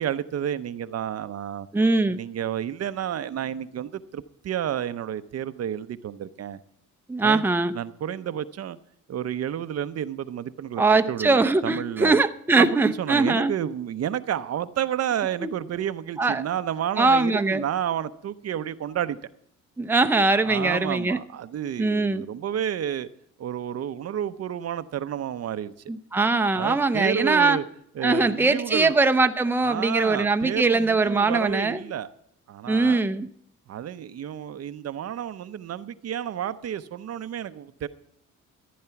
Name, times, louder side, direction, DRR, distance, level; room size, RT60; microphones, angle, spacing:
voice 1, 0.0-1.7 2.1-6.6 7.2-7.4 7.7-8.8 9.1-10.8 11.1-12.2 12.6-19.2 20.4-23.1 23.4-25.7 26.5-27.6 28.0-29.0 29.6-32.1 32.5-33.1 33.7-37.9, right 10 dB, 55° right, 12 dB, 0.7 m, -30 dB
voice 2, 1.7-2.2 7.1-7.7 10.8-13.5 16.2-16.4 17.0-17.6 19.8-21.2 21.8-22.2 25.9-27.6 28.0-31.8 32.7-33.3, right 3 dB, 5° right, 7 dB, 0.6 m, -21 dB
14.5 x 9.5 x 5.8 m, 0.72 s
cardioid pair, 90°, 30 cm